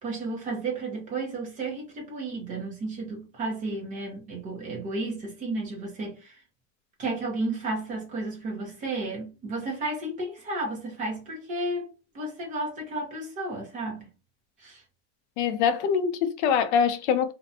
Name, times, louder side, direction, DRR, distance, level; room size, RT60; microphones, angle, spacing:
voice 1, 0.0-6.4 7.0-11.9 12.1-14.1 14.6-14.8, right 2 dB, 20° right, 0.6 m, -33 dB
voice 2, 15.4-17.3, left 7 dB, 65° left, 0.5 m, -24 dB
2.5 x 2.1 x 2.6 m
cardioid pair, 175°, 37 cm